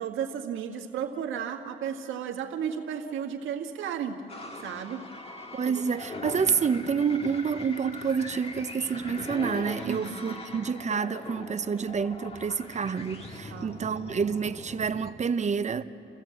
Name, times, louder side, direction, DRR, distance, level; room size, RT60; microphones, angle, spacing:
voice 1, 0.0-4.2 4.6-5.1 5.7-5.8 9.8-10.2 13.5-13.8, right 8 dB, 80° right, 1.7 m, -33 dB
sound 1, 4.3-15.1, left 2 dB, 30° left, 1.8 m, -41 dB
voice 2, 5.5-15.8, right 6 dB, 35° right, 0.8 m, -28 dB
29.0 x 14.5 x 7.7 m
cardioid pair, 90°, 20 cm